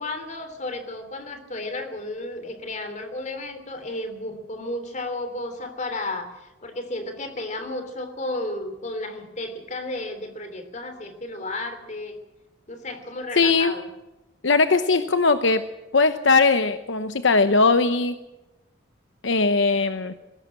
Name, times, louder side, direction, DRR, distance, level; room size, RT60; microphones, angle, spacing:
voice 1, 0.0-12.2 12.7-13.8, left 2 dB, 40° left, 8 dB, 3.1 m, -33 dB
voice 2, 13.4-13.7 14.4-15.6 15.9-18.1 19.2-20.1, left 4 dB, 70° left, 10 dB, 0.9 m, -19 dB
20.5 x 16.5 x 8.5 m, 0.98 s
head